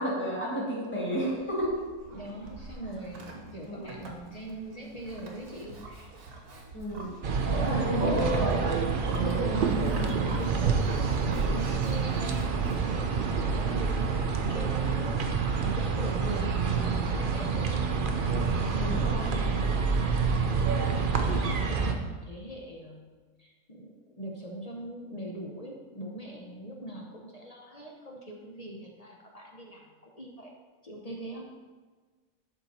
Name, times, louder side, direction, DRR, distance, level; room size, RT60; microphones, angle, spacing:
voice 1, 0.0-1.8 3.6-3.9 6.7-7.1 7.6-8.6 18.8-19.4, equal, 5° left, -5 dB, 2.2 m, -32 dB
Livestock farm animals working animals, 1.2-12.8, right 2 dB, 75° right, 1.7 m, -44 dB
voice 2, 2.1-6.1 7.0-7.1 7.4-8.2 9.1-15.2 15.6-19.0 20.1-23.0 23.4-30.5 30.8-31.5, right 1 dB, 30° left, -1 dB, 0.9 m, -41 dB
sound 1, 7.2-21.9, right 5 dB, 50° right, 0.6 m, -27 dB
11.5 x 4.5 x 4.3 m, 1.4 s
omnidirectional pair, 1.7 m